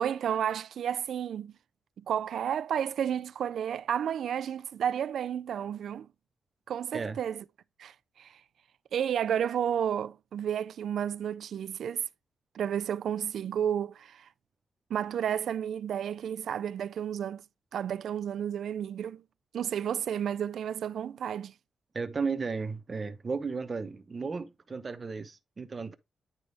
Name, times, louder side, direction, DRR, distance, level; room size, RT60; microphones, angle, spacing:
voice 1, 0.0-1.5 2.1-6.1 6.7-7.4 7.8-8.4 8.9-12.1 12.5-14.3 14.9-17.4 17.7-19.2 19.5-21.5, right 9 dB, 65° right, 0.3 m, -31 dB
voice 2, 21.9-25.9, right 4 dB, 25° right, 0.7 m, -34 dB
9.8 x 3.4 x 3.9 m
wide cardioid pair, 175°, 0 cm